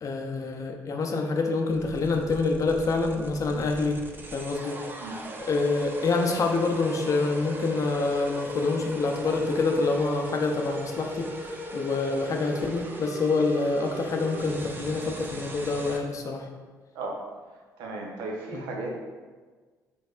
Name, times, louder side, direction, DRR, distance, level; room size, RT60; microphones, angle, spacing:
voice 1, 0.0-4.0 4.3-4.8 5.5-16.5 18.5-18.6, left 3 dB, 50° left, 3 dB, 0.5 m, -26 dB
sound 1, 1.7-16.0, right 1 dB, 30° right, 0.6 m, -39 dB
voice 2, 16.9-17.2 17.8-19.0, right 2 dB, 80° right, 0 dB, 0.7 m, -35 dB
4.3 x 3.3 x 2.4 m, 1.4 s
supercardioid pair, 60°, 7 cm